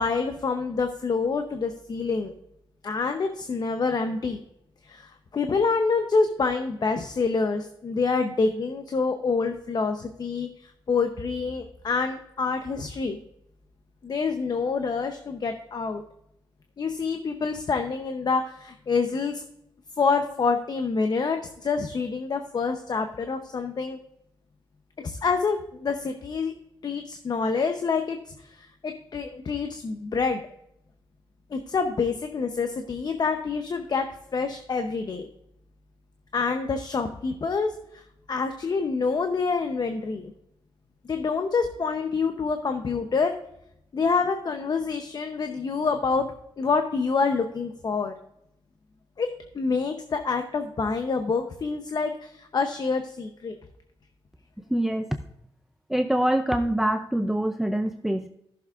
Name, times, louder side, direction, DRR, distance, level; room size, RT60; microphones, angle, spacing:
voice 1, 0.0-2.3 2.8-4.4 4.8-13.2 14.0-16.0 16.8-19.4 20.0-24.0 25.0-26.5 26.8-28.2 28.5-30.4 31.5-34.1 34.3-35.3 36.3-38.0 38.3-40.3 41.1-43.3 43.9-46.3 46.6-48.1 49.2-49.3 49.5-53.6, left 4 dB, 45° left, 6 dB, 0.8 m, -27 dB
voice 2, 54.7-55.2 55.9-58.3, right 1 dB, 5° right, 6 dB, 0.5 m, -25 dB
14.5 x 7.0 x 2.5 m, 0.79 s
cardioid pair, 100°, 10 cm